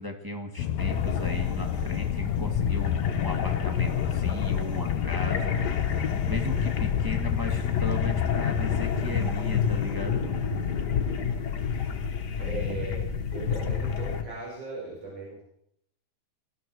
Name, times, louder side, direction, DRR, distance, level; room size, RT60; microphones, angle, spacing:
voice 1, 0.0-10.3 12.4-12.8, left 2 dB, 15° right, 2 dB, 0.7 m, -36 dB
sound 1, 0.6-8.9, left 11 dB, 80° left, 2.0 m, -31 dB
sound 2, 0.8-14.2, left 6 dB, 45° left, 1.5 m, -29 dB
voice 2, 12.4-13.0 13.3-15.4, right 3 dB, 80° right, -4 dB, 6.2 m, -38 dB
19.5 x 14.0 x 4.7 m, 0.72 s
omnidirectional pair, 3.4 m